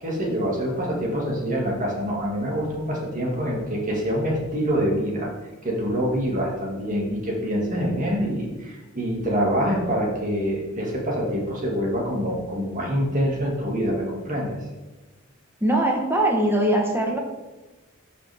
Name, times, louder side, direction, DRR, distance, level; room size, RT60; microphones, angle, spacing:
voice 1, 0.0-5.3 5.6-14.6, equal, 40° right, -2 dB, 2.1 m, -25 dB
voice 2, 15.6-17.2, right 1 dB, 10° right, 1 dB, 1.3 m, -21 dB
11.5 x 5.3 x 3.6 m, 1.1 s
head